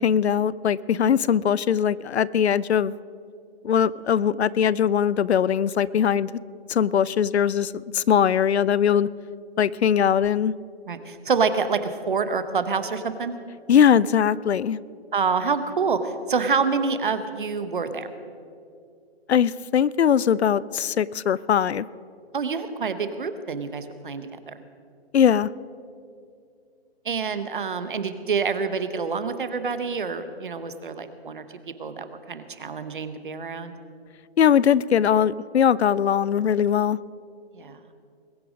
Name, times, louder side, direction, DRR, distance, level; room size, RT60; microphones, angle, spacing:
voice 1, 0.0-2.9 3.6-6.3 6.7-9.1 9.6-10.5 13.7-14.8 19.3-21.9 25.1-25.5 34.4-37.0, left 8 dB, 80° left, 21 dB, 0.5 m, -21 dB
voice 2, 10.9-13.4 15.1-18.1 22.3-24.6 27.0-33.7 37.5-37.8, right 5 dB, 50° right, 11 dB, 1.0 m, -27 dB
21.0 x 9.2 x 5.0 m, 2.4 s
hypercardioid pair, 175°, 32 cm